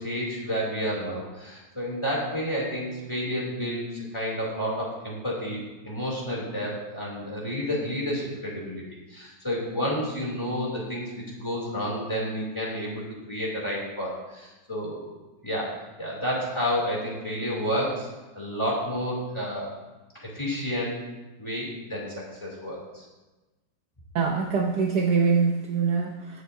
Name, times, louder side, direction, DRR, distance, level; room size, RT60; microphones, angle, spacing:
voice 1, 0.0-8.8 9.1-15.1 15.4-18.1 18.3-19.7 20.2-20.9 21.4-23.0, equal, 15° left, -5 dB, 2.7 m, -30 dB
voice 2, 24.1-26.4, right 5 dB, 65° right, 1 dB, 1.2 m, -24 dB
18.5 x 6.6 x 2.6 m, 1.1 s
omnidirectional pair, 2.1 m